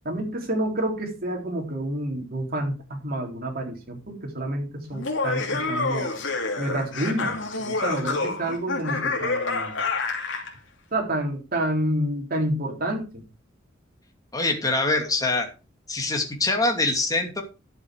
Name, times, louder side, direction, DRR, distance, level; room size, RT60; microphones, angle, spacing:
voice 1, 0.1-6.1 6.6-9.7 10.9-13.1, right 1 dB, 50° right, 1 dB, 3.6 m, -29 dB
Laughter, 4.9-10.5, left 3 dB, 70° left, 2.9 m, -28 dB
voice 2, 14.3-15.5 15.9-17.4, left 2 dB, 20° left, 3 dB, 2.6 m, -24 dB
12.0 x 7.6 x 4.8 m, 0.31 s
head